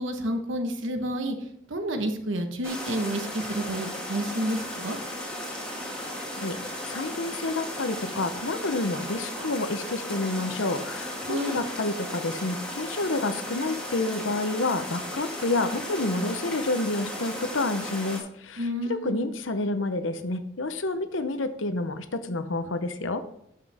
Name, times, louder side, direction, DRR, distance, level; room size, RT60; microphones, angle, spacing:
voice 1, 0.0-1.3 1.7-5.0 11.3-11.6 18.6-19.3, right 1 dB, 75° right, 6 dB, 1.2 m, -30 dB
sound 1, 2.6-18.2, left 1 dB, 5° left, 1.9 m, -35 dB
voice 2, 6.9-23.2, left 2 dB, 80° left, 10 dB, 0.8 m, -29 dB
12.5 x 5.7 x 3.5 m, 0.74 s
head